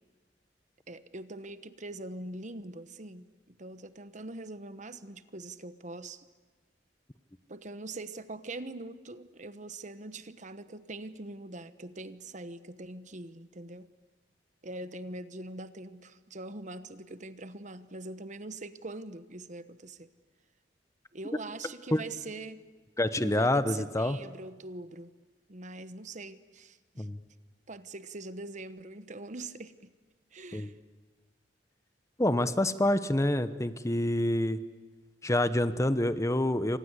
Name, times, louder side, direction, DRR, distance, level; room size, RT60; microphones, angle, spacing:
voice 1, 0.9-6.2 7.5-13.9 14.6-20.1 21.1-22.7 23.2-25.1 25.5-27.1 27.7-29.9 30.3-30.7, right 2 dB, 45° right, 13 dB, 1.1 m, -43 dB
voice 2, 23.0-24.2 27.0-27.2 30.5-30.7 32.2-34.6 35.2-36.8, left 1 dB, 15° left, 12 dB, 0.9 m, -27 dB
28.5 x 25.5 x 8.2 m, 1.3 s
head